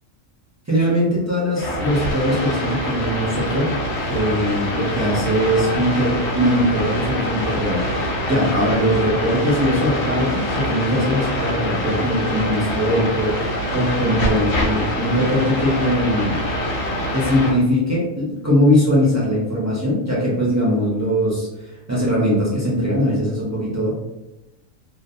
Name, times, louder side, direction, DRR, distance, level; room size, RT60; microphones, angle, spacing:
voice 1, 0.7-3.7 4.1-16.4 17.1-21.5 21.9-23.9, equal, 25° right, -7 dB, 0.3 m, -20 dB
sound 1, 1.6-17.5, equal, 70° left, 1.0 m, -24 dB
2.5 x 2.1 x 2.5 m, 0.97 s
omnidirectional pair, 1.3 m